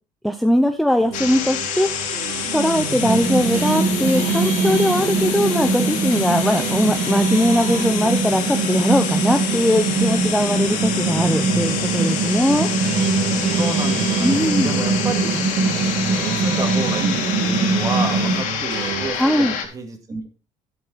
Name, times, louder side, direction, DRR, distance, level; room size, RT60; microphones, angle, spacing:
voice 1, 0.2-2.0 2.5-12.7 14.2-14.7 19.1-19.5, equal, ahead, 6 dB, 0.7 m, -20 dB
sound 1, 1.0-19.1, right 6 dB, 90° right, 2.0 m, -32 dB
sound 2, 1.1-19.6, left 8 dB, 80° left, 2.8 m, -28 dB
sound 3, 3.0-18.4, right 4 dB, 70° right, 2.7 m, -22 dB
voice 2, 13.6-15.3 15.5-15.7 16.1-20.3, right 3 dB, 25° right, 5 dB, 2.3 m, -30 dB
11.0 x 7.7 x 4.1 m, 0.32 s
cardioid pair, 145°, 13 cm